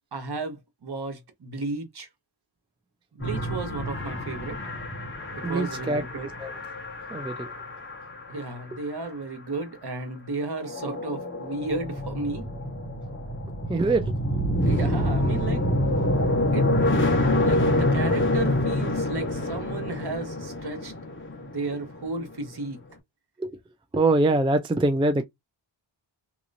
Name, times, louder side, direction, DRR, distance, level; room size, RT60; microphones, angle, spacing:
voice 1, 0.1-2.1 3.1-4.6 5.3-6.3 8.3-12.5 14.6-15.7 16.5-16.7 17.4-20.9 21.3-22.8, right 3 dB, 55° right, 1.2 m, -33 dB
sound 1, 3.2-8.1 10.7-22.2, left 1 dB, 25° left, 1.2 m, -26 dB
voice 2, 5.4-6.0 6.4-6.5 7.1-7.5 13.7-14.1 23.4-23.5 23.9-25.2, right 2 dB, 10° right, 0.4 m, -23 dB
2.9 x 2.9 x 2.5 m
wide cardioid pair, 125°, 46 cm